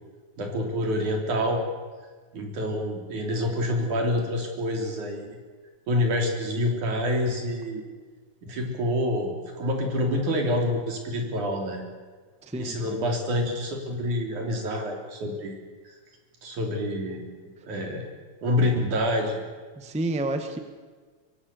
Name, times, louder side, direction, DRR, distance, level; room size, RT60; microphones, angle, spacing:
voice 1, 0.4-1.6 2.3-5.4 5.9-7.8 8.4-11.9 12.6-15.6 15.9-16.0 16.4-17.2 17.6-18.1 18.4-19.5, left 1 dB, 75° right, 2 dB, 5.1 m, -27 dB
voice 2, 12.4-13.0 19.7-20.6, right 2 dB, 5° right, 6 dB, 1.1 m, -30 dB
24.5 x 23.5 x 7.0 m, 1.5 s
omnidirectional pair, 3.5 m